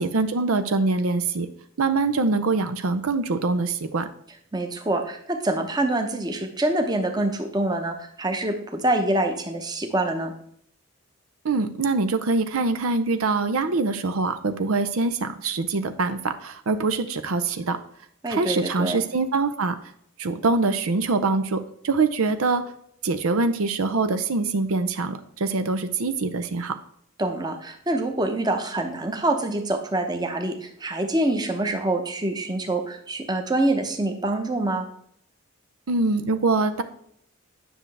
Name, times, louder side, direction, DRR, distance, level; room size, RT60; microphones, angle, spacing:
voice 1, 0.0-1.5 1.8-4.1 11.4-17.8 18.3-19.8 20.2-22.6 23.0-26.8 35.9-36.8, right 3 dB, 90° right, 10 dB, 0.6 m, -24 dB
voice 2, 4.5-10.3 18.2-19.0 27.2-34.9, right 2 dB, 20° right, 5 dB, 0.8 m, -25 dB
9.9 x 6.3 x 3.3 m, 0.68 s
head